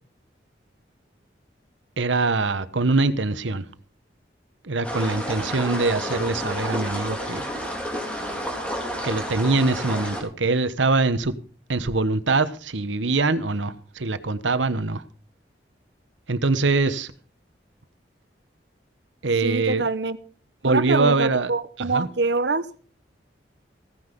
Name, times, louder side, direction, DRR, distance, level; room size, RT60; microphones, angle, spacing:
voice 1, 2.0-3.6 4.6-7.4 9.0-11.3 11.7-15.0 16.3-17.1 19.2-19.8 20.6-21.5 21.8-22.1, right 3 dB, 85° right, 1.1 m, -23 dB
sound 1, 4.8-10.2, equal, 5° left, 3.6 m, -30 dB
voice 2, 19.4-20.2 20.7-22.9, right 3 dB, 65° right, 1.0 m, -25 dB
16.5 x 9.9 x 5.3 m
head